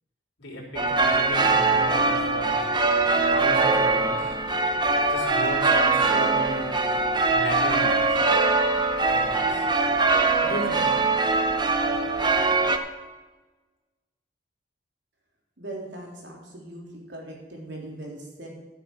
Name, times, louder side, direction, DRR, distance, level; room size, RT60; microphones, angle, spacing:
voice 1, 0.4-2.6 3.3-4.4 5.1-6.8 7.3-8.2 9.1-9.7 10.4-10.9, left 1 dB, 80° left, -3 dB, 3.8 m, -34 dB
sound 1, 0.8-12.8, right 3 dB, 25° right, 0.7 m, -22 dB
voice 2, 15.6-18.5, right 1 dB, 75° right, -2 dB, 3.5 m, -39 dB
12.0 x 7.3 x 6.1 m, 1.3 s
head